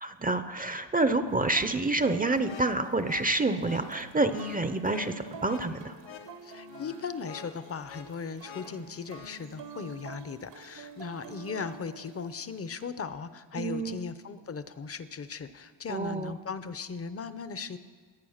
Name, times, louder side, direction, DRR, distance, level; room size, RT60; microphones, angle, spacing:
voice 1, 0.0-5.9 13.5-14.0 15.9-16.4, right 2 dB, 20° right, 10 dB, 0.6 m, -28 dB
sound 1, 1.3-12.8, right 5 dB, 70° right, 1.2 m, -48 dB
sound 2, 2.4-9.4, left 6 dB, 85° left, 1.3 m, -48 dB
voice 2, 6.4-17.8, left 5 dB, 30° left, 13 dB, 0.7 m, -38 dB
21.5 x 9.1 x 6.5 m, 1.5 s
wide cardioid pair, 150°, 45 cm